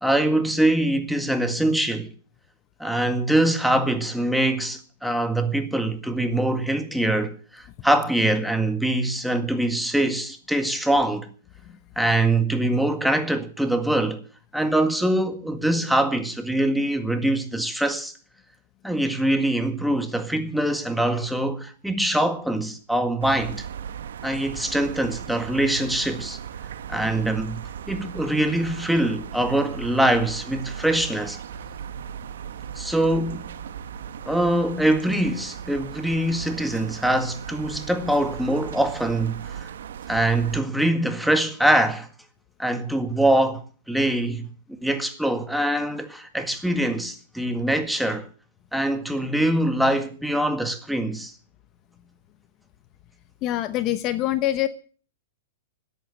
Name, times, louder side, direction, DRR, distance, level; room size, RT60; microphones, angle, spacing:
voice 1, 0.0-2.1 2.8-11.3 11.9-14.2 14.5-18.1 18.8-23.7 24.2-26.4 26.9-31.4 32.7-33.5 34.2-39.7 40.1-42.1 42.6-44.5 44.8-48.3 48.7-51.3, right 1 dB, ahead, 1.8 m, -23 dB
sound 1, 23.2-40.6, right 8 dB, 75° right, 1.3 m, -37 dB
voice 2, 53.4-54.7, left 14 dB, 35° left, 1.0 m, -24 dB
14.0 x 10.0 x 8.1 m
hypercardioid pair, 135°, 0 cm